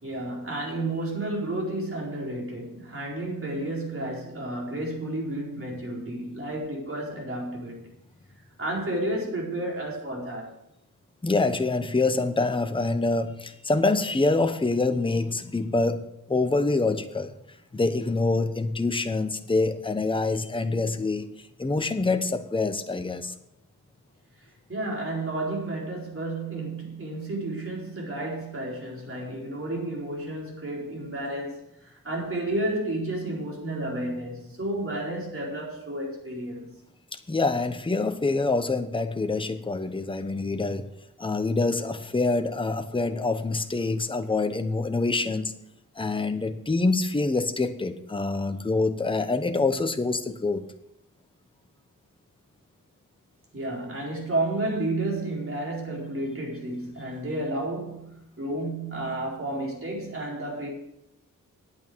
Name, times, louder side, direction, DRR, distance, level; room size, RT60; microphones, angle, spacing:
voice 1, 0.0-7.9 8.6-10.6 24.7-36.8 53.5-60.7, right 1 dB, 40° right, 4.5 m, -31 dB
voice 2, 11.2-17.3 17.7-23.3 29.1-29.2 37.3-40.9 41.2-45.5 46.0-50.6, left 3 dB, 15° left, 0.9 m, -26 dB
9.5 x 8.3 x 6.3 m
cardioid pair, 85°, 33 cm